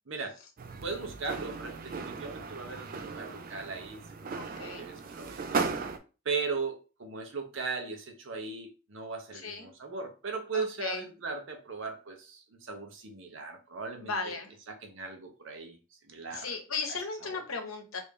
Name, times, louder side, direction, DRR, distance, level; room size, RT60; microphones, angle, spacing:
voice 1, 0.1-0.4 0.8-4.4 4.6-5.6 6.2-14.4 14.7-15.8 16.1-16.5 16.9-17.4, right 4 dB, 65° right, 4 dB, 0.7 m, -38 dB
sound 1, 0.6-6.0, right 4 dB, 40° right, 0.4 m, -37 dB
voice 2, 4.4-4.9 9.3-9.7 10.5-11.0 14.0-14.5 16.3-18.0, left 4 dB, 85° left, 4 dB, 0.9 m, -36 dB
3.3 x 2.6 x 3.4 m, 0.33 s
head